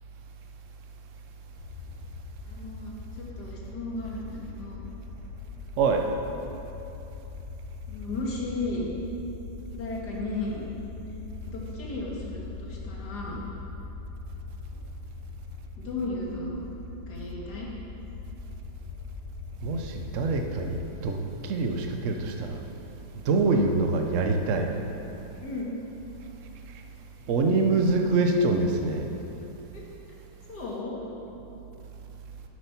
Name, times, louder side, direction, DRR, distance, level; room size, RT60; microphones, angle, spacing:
sound 1, 1.6-20.8, left 4 dB, 85° left, 0.8 m, -41 dB
voice 1, 2.5-4.8 7.9-8.9 9.7-10.6 11.5-13.4 15.8-16.6 17.1-17.7 23.4-23.6 25.4-25.7 29.7-29.8 30.5-31.1, left 2 dB, 50° left, -4 dB, 2.2 m, -35 dB
voice 2, 19.6-21.2 21.4-22.6 23.2-24.7 27.3-29.1, right 3 dB, 65° right, 3 dB, 0.7 m, -25 dB
9.5 x 8.1 x 5.9 m, 3.0 s
omnidirectional pair, 2.3 m